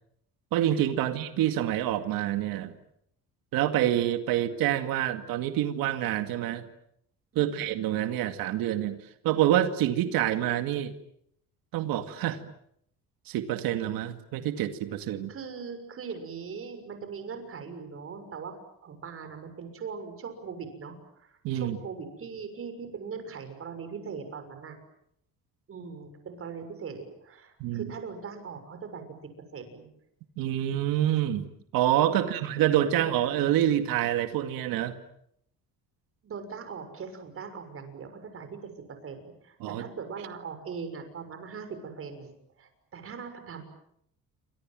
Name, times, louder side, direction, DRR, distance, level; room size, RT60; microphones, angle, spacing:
voice 1, 0.5-2.7 3.5-6.7 7.4-10.9 11.7-12.4 13.3-15.3 21.4-21.8 27.6-27.9 30.4-35.0 39.6-39.8, right 12 dB, 90° right, 8 dB, 2.3 m, -27 dB
voice 2, 7.3-7.6 15.3-18.5 18.8-24.8 25.7-29.0 29.5-29.9 32.1-32.4 36.2-43.6, right 5 dB, 40° right, 8 dB, 6.5 m, -40 dB
28.5 x 26.0 x 7.7 m, 0.74 s
cardioid pair, 145°, 34 cm